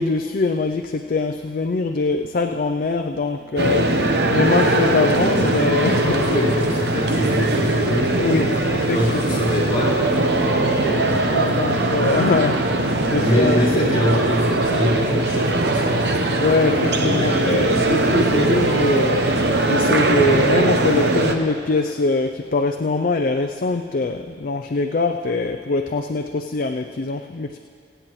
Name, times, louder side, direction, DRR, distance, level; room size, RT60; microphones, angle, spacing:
voice 1, 0.0-3.9 4.3-6.2 8.2-8.5 8.9-9.4 11.2-13.6 16.4-19.2 19.6-27.6, left 3 dB, 50° left, 5 dB, 0.4 m, -23 dB
sound 1, 3.6-21.3, right 2 dB, 65° right, 0.9 m, -20 dB
voice 2, 6.0-11.1 13.1-17.3, equal, 30° left, -7 dB, 3.8 m, -25 dB
26.5 x 9.1 x 3.1 m, 2.2 s
head